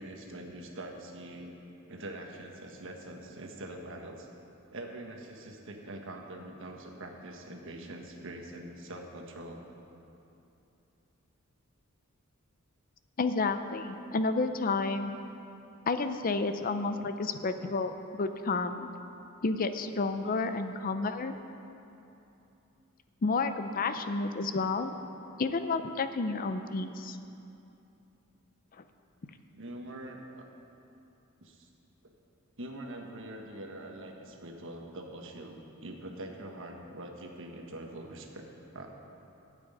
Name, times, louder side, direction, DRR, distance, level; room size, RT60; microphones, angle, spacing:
voice 1, 0.0-1.6 1.9-4.3 4.7-9.6 19.9-20.7 29.5-30.5 31.4-31.7 32.6-38.4 38.7-38.9, right 1 dB, 65° right, 2 dB, 1.4 m, -44 dB
voice 2, 13.2-15.2 15.9-18.9 19.4-21.3 23.2-24.9 25.4-27.2, left 3 dB, 40° left, 9 dB, 0.5 m, -30 dB
12.5 x 6.2 x 9.0 m, 2.8 s
head